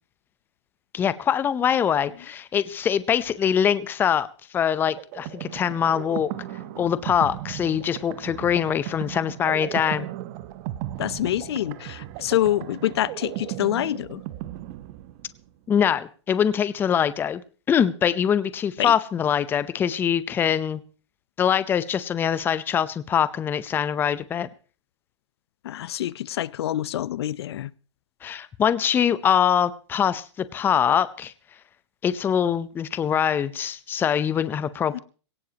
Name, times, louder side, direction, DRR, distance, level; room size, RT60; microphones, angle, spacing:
voice 1, 0.9-6.3 6.8-10.1 15.7-17.4 17.7-20.8 21.4-24.5 28.2-31.3 32.0-35.0, left 8 dB, 15° left, 0.6 m, -23 dB
sound 1, 5.0-15.5, right 14 dB, 40° right, 1.0 m, -36 dB
voice 2, 11.0-14.2 18.8-18.9 25.6-27.7 34.9-35.0, left 13 dB, 65° left, 0.6 m, -26 dB
19.5 x 18.0 x 2.9 m
hypercardioid pair, 145°, 15 cm